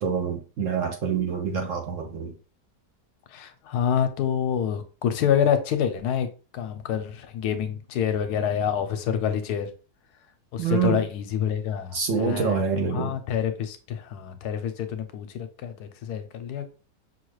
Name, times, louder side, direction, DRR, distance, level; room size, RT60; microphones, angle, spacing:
voice 1, 0.0-2.3 10.6-11.1 11.9-13.1, right 6 dB, 60° right, 0.9 m, -26 dB
voice 2, 3.3-9.7 10.5-16.7, left 8 dB, 75° left, 1.1 m, -27 dB
5.9 x 2.3 x 3.1 m
omnidirectional pair, 1.8 m